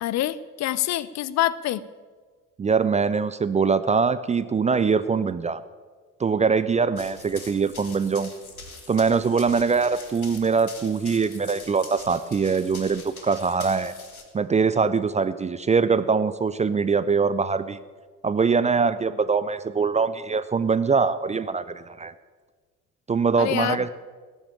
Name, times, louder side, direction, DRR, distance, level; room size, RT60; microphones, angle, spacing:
voice 1, 0.0-1.8 23.4-23.9, left 13 dB, 40° left, 19 dB, 0.6 m, -26 dB
voice 2, 2.6-5.6 6.2-8.3 8.9-13.9 14.3-17.8 18.2-22.1 23.1-23.9, right 5 dB, 15° right, 13 dB, 0.5 m, -23 dB
Run, 7.0-14.2, left 3 dB, 85° left, 1.3 m, -43 dB
18.0 x 7.1 x 8.7 m, 1.5 s
figure-of-eight pair, 55°, 41 cm